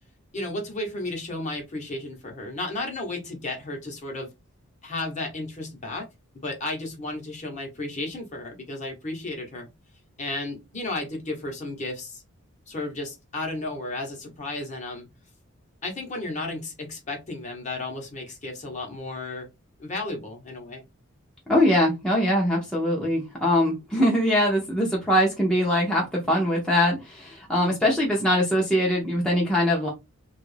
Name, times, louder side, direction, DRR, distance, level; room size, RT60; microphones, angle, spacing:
voice 1, 0.3-4.3 4.8-6.1 6.4-9.7 10.2-12.2 12.7-15.1 15.8-19.5 19.8-20.8, left 2 dB, 35° left, 2 dB, 0.9 m, -33 dB
voice 2, 21.5-29.9, equal, 5° left, -4 dB, 0.7 m, -22 dB
3.0 x 2.4 x 3.2 m, 0.23 s
head